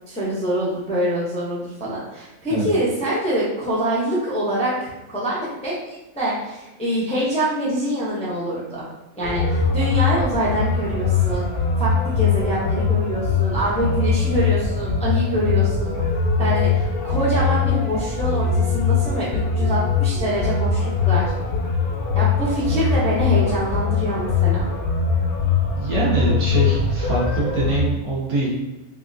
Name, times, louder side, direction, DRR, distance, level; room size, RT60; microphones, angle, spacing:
voice 1, 0.1-8.9 9.2-11.5 11.8-16.0 16.4-21.3 22.1-24.7, right 1 dB, 10° left, -7 dB, 0.4 m, -25 dB
sound 1, 9.2-27.8, left 5 dB, 80° left, 1.1 m, -21 dB
voice 2, 25.7-28.5, right 2 dB, 80° right, -5 dB, 1.4 m, -23 dB
3.4 x 2.4 x 2.5 m, 1.0 s
omnidirectional pair, 1.5 m